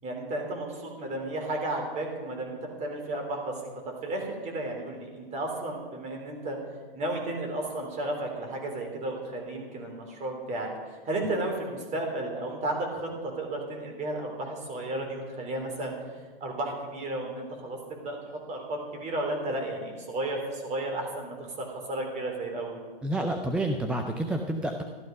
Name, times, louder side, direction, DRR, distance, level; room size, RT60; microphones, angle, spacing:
voice 1, 0.0-3.6 4.0-6.6 6.9-22.8, right 2 dB, 25° right, 2 dB, 3.5 m, -33 dB
voice 2, 23.0-24.8, right 1 dB, 5° right, 3 dB, 0.3 m, -29 dB
14.0 x 12.0 x 5.3 m, 1.4 s
hypercardioid pair, 130°, 30 cm